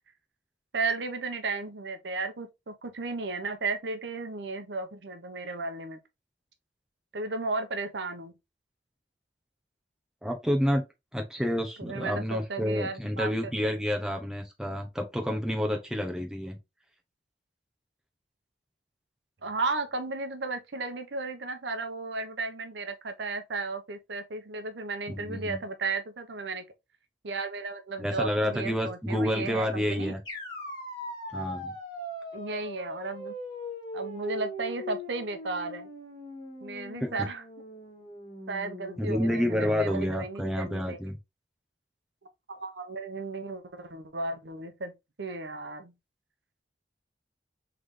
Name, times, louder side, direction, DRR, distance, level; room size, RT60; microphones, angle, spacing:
voice 1, 0.7-6.0 7.1-8.3 11.8-13.8 19.4-26.6 27.2-30.2 32.3-33.3 33.9-35.9 36.6-37.4 38.5-41.0 42.5-44.9 45.2-45.9, right 3 dB, 80° right, 0.8 m, -34 dB
voice 2, 10.2-10.8 11.1-16.6 25.1-25.6 28.0-30.2 31.3-31.7 37.0-37.1 39.0-41.1, equal, 5° right, 0.9 m, -29 dB
sound 1, 30.3-40.2, left 1 dB, 25° left, 2.1 m, -40 dB
4.0 x 3.3 x 3.6 m
head